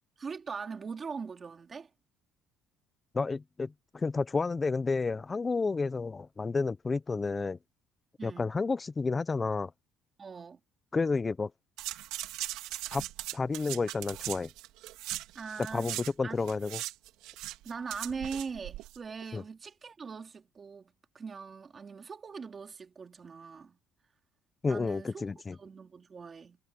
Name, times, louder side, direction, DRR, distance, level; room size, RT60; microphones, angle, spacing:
voice 1, 0.2-1.9 8.2-8.5 10.2-10.6 15.3-15.9 16.2-16.4 17.6-23.8 24.6-25.3 25.6-26.6, right 5 dB, 30° right, 2.7 m, -41 dB
voice 2, 3.1-7.6 8.2-9.7 10.9-11.5 12.9-13.0 13.3-14.5 15.7-16.8 19.3-19.4 24.6-25.6, left 4 dB, 20° left, 0.6 m, -31 dB
sound 1, 11.8-16.1 16.4-19.0 19.2-19.3, right 16 dB, 85° right, 3.2 m, -39 dB
cardioid pair, 135°, 0 cm